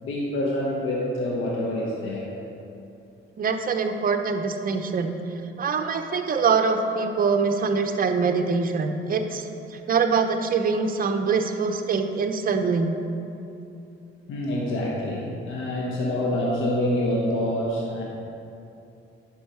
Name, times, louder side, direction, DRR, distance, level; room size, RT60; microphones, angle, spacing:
voice 1, 0.0-2.3 14.3-18.0, left 1 dB, 70° left, -4 dB, 1.4 m, -26 dB
voice 2, 3.4-5.2 5.6-12.9, right 5 dB, 45° right, 5 dB, 0.8 m, -24 dB
10.5 x 5.5 x 4.5 m, 2.7 s
cardioid pair, 100°, 21 cm